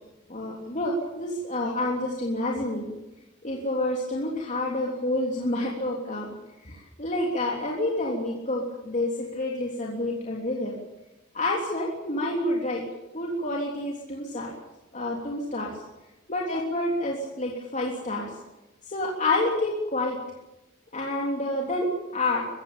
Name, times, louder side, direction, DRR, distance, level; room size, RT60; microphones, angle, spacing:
voice 1, 0.3-2.9 3.4-6.3 6.6-10.7 11.3-12.8 13.1-14.5 14.9-15.8 16.3-18.3 18.9-20.2 20.9-22.5, left 1 dB, 35° left, -2 dB, 3.4 m, -28 dB
24.0 x 16.0 x 8.9 m, 1.0 s
head